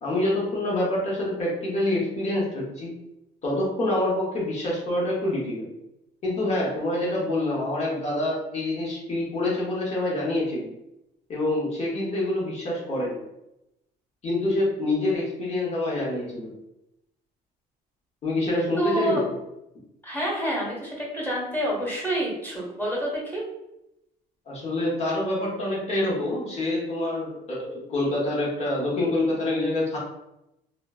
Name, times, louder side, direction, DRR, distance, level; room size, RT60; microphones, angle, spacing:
voice 1, 0.0-2.9 3.4-5.7 6.2-10.7 11.3-13.2 14.2-16.6 18.2-19.3 24.5-30.0, left 1 dB, 40° left, -5 dB, 1.0 m, -26 dB
voice 2, 18.8-19.2 20.0-23.4, right 1 dB, 10° left, -5 dB, 1.3 m, -28 dB
3.0 x 2.0 x 2.3 m, 0.86 s
cardioid pair, 110°, 17 cm